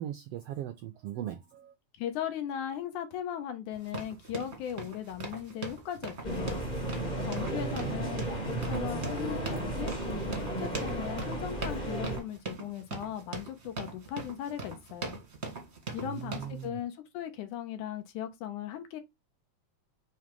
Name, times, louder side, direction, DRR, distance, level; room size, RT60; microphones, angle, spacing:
voice 1, 0.0-1.7 7.4-8.0 16.0-16.8, right 11 dB, 90° right, 1.3 m, -39 dB
voice 2, 2.0-6.6 7.2-15.2 15.9-19.0, left 10 dB, 80° left, 2.5 m, -38 dB
sound 1, 3.7-16.7, right 3 dB, 35° right, 1.0 m, -41 dB
sound 2, 6.2-12.2, right 1 dB, 15° left, 1.6 m, -34 dB
6.2 x 3.4 x 5.2 m
omnidirectional pair, 3.6 m